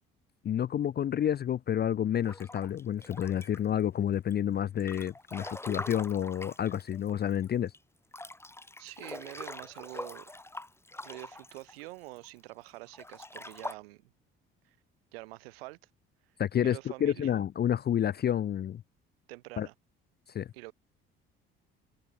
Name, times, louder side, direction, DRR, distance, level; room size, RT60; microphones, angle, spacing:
voice 1, 0.4-7.7 16.4-18.8 19.6-19.7 20.3-20.5, left 10 dB, 35° left, 0.5 m, -29 dB
Breathing / Bathtub (filling or washing) / Splash splatter, 2.2-3.8 4.3-7.5 7.7-7.8 8.1-12.3 12.9-13.7, left 2 dB, 10° left, 1.1 m, -43 dB
voice 2, 8.8-10.3 11.0-14.1 14.6-14.8 15.1-15.8 16.6-17.4 19.3-19.7 20.5-20.7, right 22 dB, 85° right, 2.9 m, -46 dB
hypercardioid pair, 60°, 29 cm